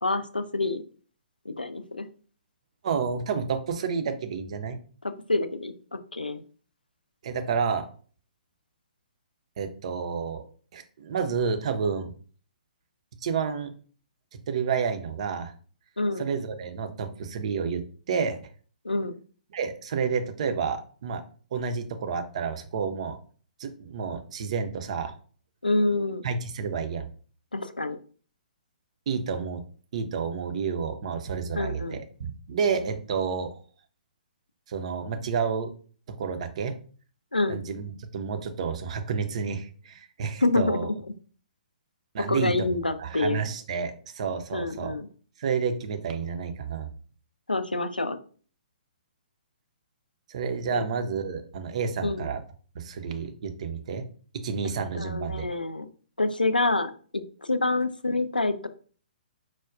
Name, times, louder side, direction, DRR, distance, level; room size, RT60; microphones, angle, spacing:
voice 1, 0.0-0.8 1.5-2.1 5.3-6.4 16.0-16.3 18.8-19.1 25.6-26.2 27.5-28.0 31.5-32.0 37.3-37.6 40.4-40.9 42.3-43.4 44.5-45.1 47.5-48.2 50.7-50.9 52.0-52.3 54.9-55.9 56.2-58.7, left 2 dB, 85° left, 10 dB, 0.3 m, -27 dB
voice 2, 2.8-4.8 7.2-7.9 9.6-10.4 10.7-12.1 13.2-13.7 14.5-15.5 16.2-17.8 18.1-18.4 19.5-21.2 21.5-23.2 23.6-25.1 26.2-27.1 29.1-29.6 29.9-33.6 34.7-35.7 36.2-36.7 37.5-40.9 42.1-42.7 43.0-44.9 45.4-46.9 50.3-52.4 52.7-54.0 54.4-55.5, right 6 dB, 45° right, 8 dB, 0.5 m, -30 dB
4.6 x 2.1 x 2.4 m, 0.42 s
figure-of-eight pair, 125°, 5 cm